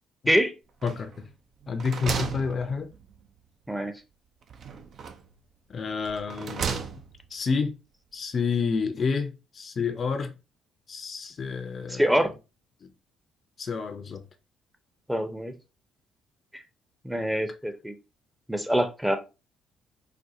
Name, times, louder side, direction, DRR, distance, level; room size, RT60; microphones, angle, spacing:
voice 1, 0.8-1.3 1.7-2.9 5.7-6.7 7.3-7.7 8.1-10.3 10.9-12.1 12.8-12.9 13.6-14.2, left 5 dB, 45° left, 0.5 m, -29 dB
sound 1, 0.8-1.3 1.6-3.2 4.5-5.4 6.0-7.3, right 6 dB, 55° right, 0.5 m, -34 dB
voice 2, 11.9-12.3 15.1-15.5 17.0-17.9 18.5-19.2, equal, 5° right, 0.7 m, -25 dB
4.2 x 2.2 x 2.6 m
hypercardioid pair, 55°, 0 cm